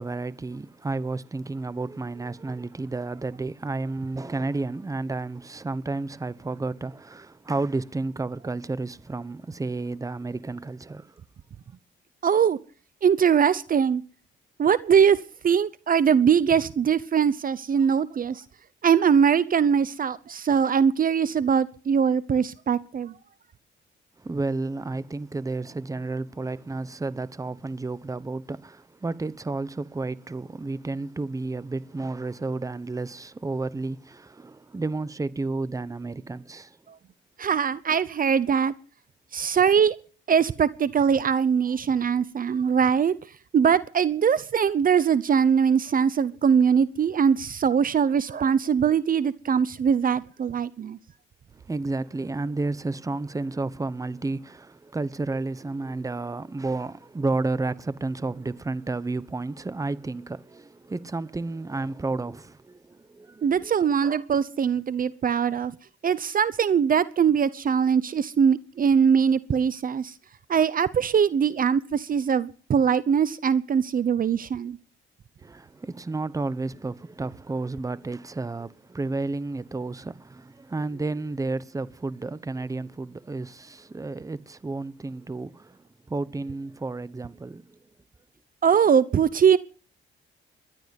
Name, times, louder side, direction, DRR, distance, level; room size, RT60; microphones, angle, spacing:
voice 1, 0.0-11.2 24.2-36.8 51.5-63.7 75.4-87.8, right 3 dB, 15° right, 1.0 m, -31 dB
voice 2, 12.2-12.6 13.0-14.0 14.6-15.2 15.4-18.4 18.8-23.1 37.4-38.7 39.3-40.0 40.3-43.1 43.5-51.0 63.4-65.7 66.0-70.1 70.5-74.8 88.6-89.6, right 7 dB, 45° right, 0.8 m, -22 dB
20.5 x 12.0 x 5.3 m
cardioid pair, 90°, 20 cm